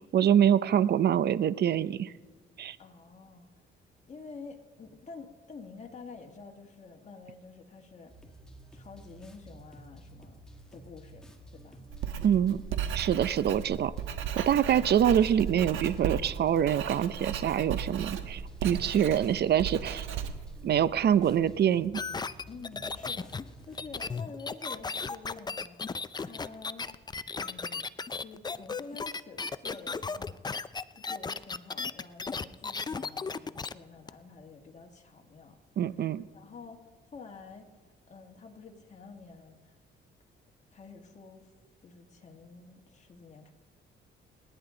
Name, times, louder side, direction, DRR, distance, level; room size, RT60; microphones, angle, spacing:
voice 1, 0.1-2.1 2.6-2.8 12.2-12.6 12.9-13.9 14.4-20.0 20.6-22.0 35.8-36.3, right 9 dB, 55° right, 17 dB, 0.6 m, -25 dB
voice 2, 2.8-3.5 4.1-8.1 8.7-10.4 10.7-11.3 11.5-11.9 13.3-13.4 14.5-14.8 22.5-26.9 27.3-27.8 28.1-30.4 30.9-35.6 36.3-36.8 37.1-37.7 38.1-39.7 40.7-41.5 41.8-43.5, left 4 dB, 35° left, 2 dB, 2.1 m, -48 dB
sound 1, 8.1-24.1, right 1 dB, 5° left, 2.0 m, -52 dB
Writing, 11.9-21.3, right 8 dB, 90° right, 1.2 m, -36 dB
sound 2, 21.9-33.7 34.1-34.2, left 4 dB, 20° left, 0.5 m, -35 dB
29.5 x 10.0 x 3.9 m, 1.4 s
cardioid pair, 90°, 20 cm